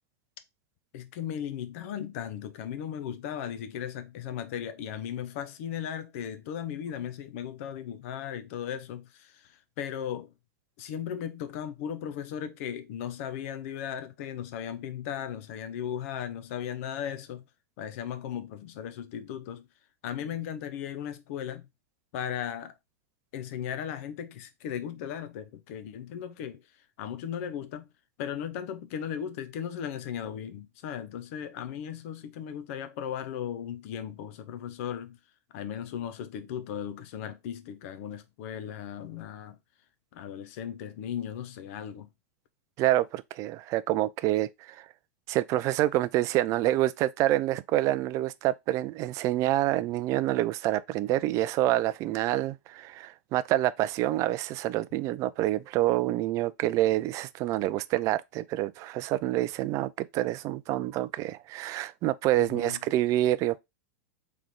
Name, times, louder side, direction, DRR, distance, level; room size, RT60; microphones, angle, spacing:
voice 1, 0.9-10.3 10.8-17.4 17.8-19.7 20.0-21.7 22.1-22.7 23.3-26.6 27.0-27.9 28.2-35.2 35.5-39.6 40.1-42.1 62.3-62.8, left 9 dB, 60° left, 0.7 m, -36 dB
voice 2, 42.8-44.8 45.3-63.6, right 15 dB, 40° right, 0.4 m, -27 dB
3.7 x 3.3 x 3.5 m
hypercardioid pair, 120°, 8 cm